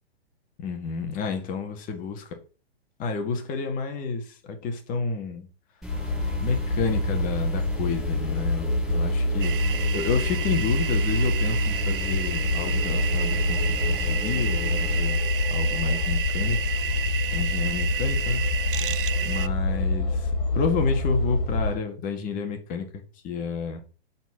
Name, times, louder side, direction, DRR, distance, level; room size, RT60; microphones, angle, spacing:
voice 1, 0.6-2.2 3.0-5.5 6.4-9.6 9.9-15.2 15.5-16.6 17.3-18.4 19.2-23.8, left 5 dB, 25° left, 1.8 m, -30 dB
sound 1, 5.8-15.0, right 2 dB, ahead, 3.5 m, -38 dB
sound 2, 5.9-21.8, left 3 dB, 50° left, 2.4 m, -26 dB
sound 3, 9.4-19.5, right 10 dB, 55° right, 0.7 m, -31 dB
8.9 x 4.3 x 5.9 m
hypercardioid pair, 130°, 32 cm